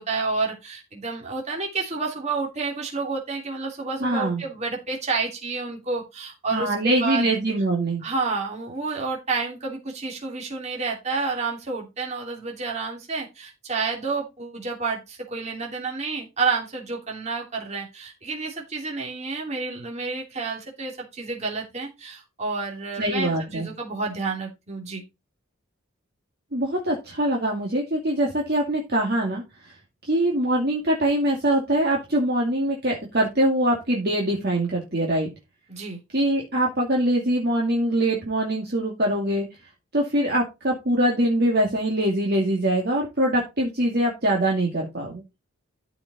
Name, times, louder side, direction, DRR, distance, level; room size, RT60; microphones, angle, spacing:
voice 1, 0.0-7.3 8.0-25.0 35.7-36.0, right 4 dB, 30° right, -1 dB, 2.9 m, -30 dB
voice 2, 4.0-4.4 6.5-8.0 23.0-23.7 26.5-29.7 30.0-35.3 36.1-39.5 39.9-45.2, right 1 dB, 45° right, -1 dB, 2.2 m, -23 dB
13.5 x 5.2 x 4.1 m, 0.24 s
head